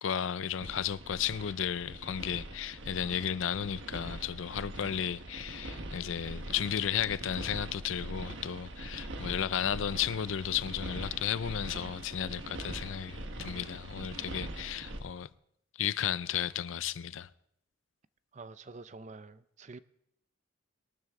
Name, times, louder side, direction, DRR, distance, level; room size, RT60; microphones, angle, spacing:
voice 1, 0.0-15.3 15.8-17.3, left 9 dB, 75° left, 0.4 m, -34 dB
sound 1, 0.6-15.0, right 1 dB, 70° right, 1.3 m, -43 dB
voice 2, 18.3-19.8, right 3 dB, 35° right, 0.5 m, -47 dB
22.0 x 12.5 x 3.7 m
head